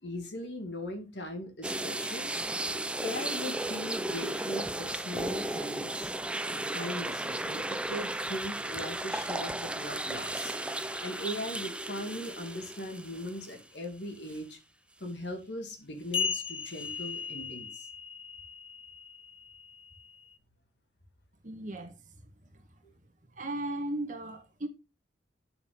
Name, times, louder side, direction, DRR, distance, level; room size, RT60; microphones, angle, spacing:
voice 1, 0.0-2.4 3.0-6.1 6.7-10.6 11.0-14.6 15.0-17.9, left 1 dB, 70° left, 2.2 m, -39 dB
sound 1, 1.6-13.8 14.3-14.4 16.7-16.9, right 2 dB, 5° right, 0.4 m, -35 dB
sound 2, 10.1-13.3 16.1-20.4, left 5 dB, 30° left, 0.7 m, -39 dB
voice 2, 21.4-22.7 23.3-24.7, right 1 dB, 45° right, 1.8 m, -37 dB
8.8 x 6.8 x 3.9 m
head